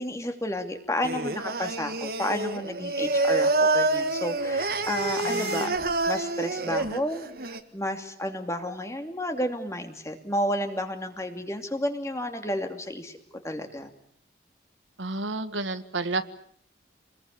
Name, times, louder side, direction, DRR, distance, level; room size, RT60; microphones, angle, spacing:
voice 1, 0.0-5.7 6.1-13.2 13.4-13.9, left 1 dB, 15° left, 6 dB, 2.8 m, -31 dB
Singing, 1.0-7.6, right 2 dB, 55° right, 1.8 m, -27 dB
sound 1, 3.8-6.0, left 4 dB, 70° left, 5.1 m, -44 dB
voice 2, 5.2-5.8 15.0-16.2, right 3 dB, 90° right, 10 dB, 1.8 m, -31 dB
28.0 x 21.5 x 8.5 m, 0.63 s
head